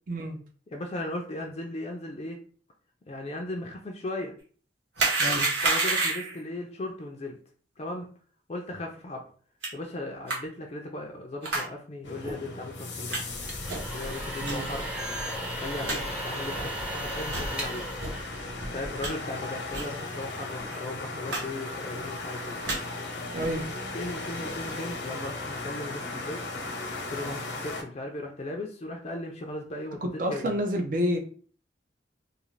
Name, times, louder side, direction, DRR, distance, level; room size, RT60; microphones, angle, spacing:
voice 1, 0.1-0.4 5.2-5.5 14.4-14.7 23.3-23.7 30.0-31.2, equal, 50° right, 3 dB, 0.5 m, -29 dB
voice 2, 0.7-2.4 3.1-4.3 5.6-7.4 7.8-8.1 8.5-9.2 9.7-13.2 13.9-14.9 15.6-17.9 18.7-22.6 23.9-26.4 27.1-30.6, left 2 dB, 35° left, 1 dB, 0.4 m, -37 dB
sound 1, 5.0-6.4 9.6-9.7 10.3-10.4 11.4-11.7 12.2-12.3 13.1-13.2 13.7-13.9 14.4-14.5 15.1-15.2 15.5-15.6 15.8-16.0 16.5-16.7 17.2-17.5 18.0-18.1 18.6-19.1 19.7-19.9 20.2-20.3 20.6-20.8 21.3-21.4 21.7-22.0 22.4-22.8 23.4-23.6, right 3 dB, 90° right, 1.1 m, -29 dB
sound 2, 12.0-27.8, left 2 dB, 90° left, 0.7 m, -37 dB
sound 3, 13.3-19.0, equal, 5° right, 0.6 m, -36 dB
2.5 x 2.4 x 3.1 m, 0.43 s
head